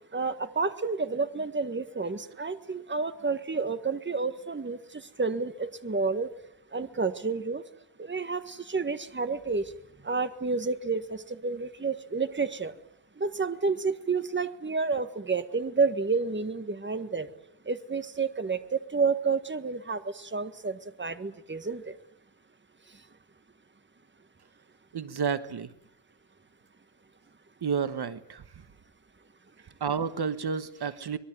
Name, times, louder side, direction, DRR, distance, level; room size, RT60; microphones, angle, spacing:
voice 1, 0.1-6.3 6.7-7.6 8.0-9.7 10.0-12.7 13.2-17.3 17.6-21.9, right 4 dB, 25° right, 10 dB, 1.6 m, -30 dB
voice 2, 24.9-25.7 27.6-28.4 29.8-31.2, right 6 dB, 65° right, 12 dB, 1.4 m, -30 dB
24.5 x 21.5 x 9.3 m, 0.77 s
wide cardioid pair, 130°, 41 cm